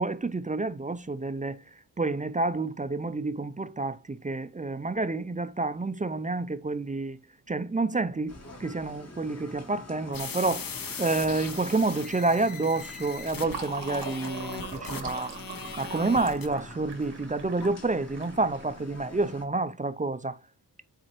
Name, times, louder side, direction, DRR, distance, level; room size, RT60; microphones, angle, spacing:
voice 1, 0.0-1.6 2.0-7.2 7.5-8.3 8.6-10.7 11.0-15.4 15.8-20.4, right 3 dB, 20° right, 0.4 m, -29 dB
sound 1, 8.3-19.5, left 2 dB, 40° left, 1.1 m, -46 dB
sound 2, 10.1-16.5, left 5 dB, 55° left, 0.8 m, -39 dB
Fill (with liquid), 12.8-19.2, right 5 dB, 85° right, 1.4 m, -42 dB
9.0 x 4.2 x 3.0 m
wide cardioid pair, 125°, 40 cm